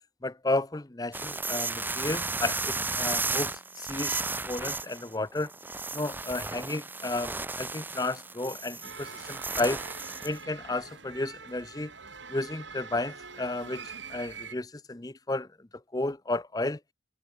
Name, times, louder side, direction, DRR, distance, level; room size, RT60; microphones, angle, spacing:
voice 1, 0.2-5.5 5.9-9.8 10.2-11.9 12.3-16.8, left 2 dB, 20° left, 0.7 m, -33 dB
sound 1, 1.1-10.4, right 3 dB, 10° right, 0.9 m, -34 dB
sound 2, 8.8-14.5, right 5 dB, 70° right, 6.4 m, -44 dB
head